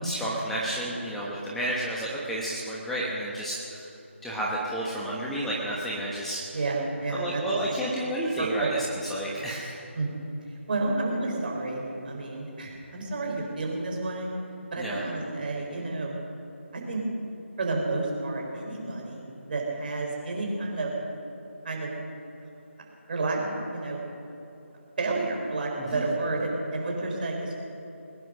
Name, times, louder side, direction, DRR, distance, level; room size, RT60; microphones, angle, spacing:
voice 1, 0.0-3.9 4.2-6.6 7.1-8.7 9.1-9.8 14.8-15.0 25.9-26.0, right 1 dB, 5° left, -6 dB, 1.2 m, -31 dB
voice 2, 6.5-7.4 8.4-8.7 9.9-10.1 10.7-14.3 14.7-16.2 16.7-17.0 17.6-20.9 21.6-21.9 23.1-24.0 25.0-27.6, right 2 dB, 45° right, -1 dB, 4.3 m, -30 dB
21.0 x 10.5 x 6.3 m, 3.0 s
figure-of-eight pair, 160°, 7 cm